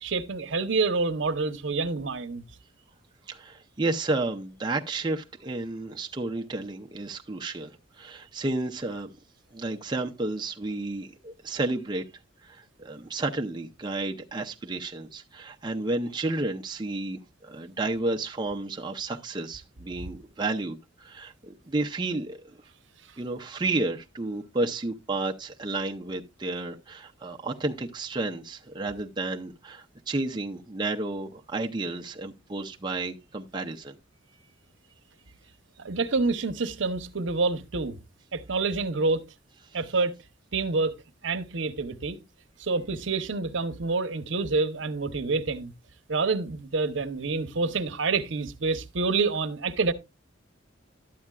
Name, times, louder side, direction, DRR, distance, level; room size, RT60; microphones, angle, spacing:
voice 1, 0.0-2.4 35.8-38.0 38.3-39.2 39.7-40.2 40.5-40.9 41.2-42.2 42.6-45.7 46.1-49.9, right 3 dB, 70° right, 0.8 m, -27 dB
voice 2, 3.3-9.1 9.5-12.0 12.4-22.6 23.2-33.9, right 2 dB, 25° right, 0.6 m, -31 dB
12.0 x 8.6 x 2.3 m
head